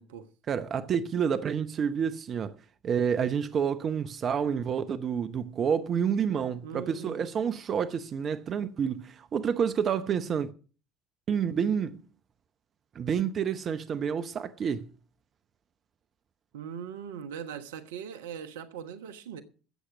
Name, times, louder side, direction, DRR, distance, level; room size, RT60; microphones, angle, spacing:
voice 1, 0.5-2.5 2.8-10.5 11.3-12.0 12.9-14.9, right 7 dB, 45° right, 0.8 m, -29 dB
voice 2, 6.6-7.2 16.5-19.4, right 8 dB, 75° right, 1.1 m, -40 dB
13.5 x 8.1 x 6.1 m
hypercardioid pair, 60°, 0 cm